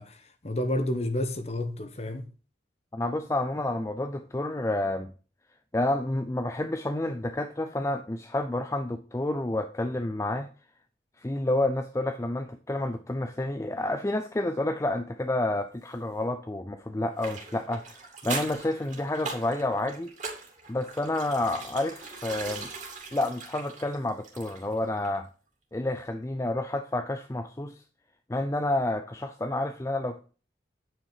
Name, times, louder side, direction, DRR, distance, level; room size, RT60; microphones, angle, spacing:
voice 1, 0.0-2.3, left 1 dB, 35° left, 1.1 m, -30 dB
voice 2, 2.9-5.1 5.7-10.5 11.2-20.1 20.7-22.7 23.1-25.3 25.7-27.8 28.3-30.3, left 1 dB, 15° left, 0.5 m, -29 dB
sound 1, 17.2-24.8 25.0-25.2, right 4 dB, 40° right, 2.5 m, -40 dB
9.4 x 5.8 x 4.9 m
head